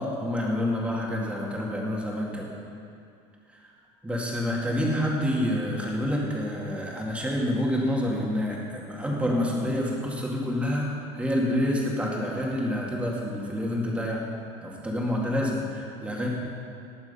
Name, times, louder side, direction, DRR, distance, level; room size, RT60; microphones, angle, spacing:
voice 1, 0.0-2.5 3.6-3.7 4.0-14.3 14.6-16.3, left 1 dB, 10° right, -3 dB, 2.3 m, -28 dB
18.5 x 7.1 x 5.6 m, 2.5 s
cardioid pair, 145°, 15 cm